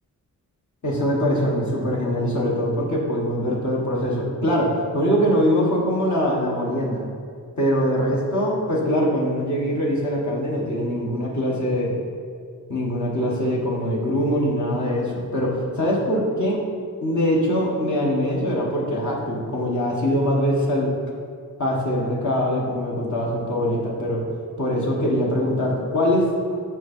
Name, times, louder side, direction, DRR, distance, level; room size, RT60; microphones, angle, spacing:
voice 1, 0.8-7.0 7.6-12.0 12.7-16.6 17.0-20.9 21.6-24.2 24.6-26.6, equal, 60° left, -3 dB, 1.5 m, -23 dB
6.2 x 5.8 x 4.4 m, 2.2 s
cardioid pair, 75°, 33 cm